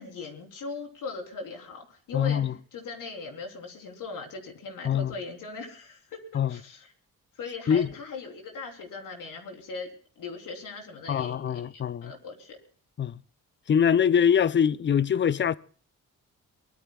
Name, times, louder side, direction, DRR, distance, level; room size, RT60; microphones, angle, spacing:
voice 1, 0.0-6.9 7.4-12.6, left 4 dB, 70° left, 3.6 m, -39 dB
voice 2, 2.1-2.5 4.8-5.1 6.3-6.6 7.7-7.9 11.1-12.1 13.0-13.2 13.7-15.6, left 8 dB, 35° left, 0.6 m, -23 dB
23.0 x 19.5 x 2.4 m
cardioid pair, 75°, 33 cm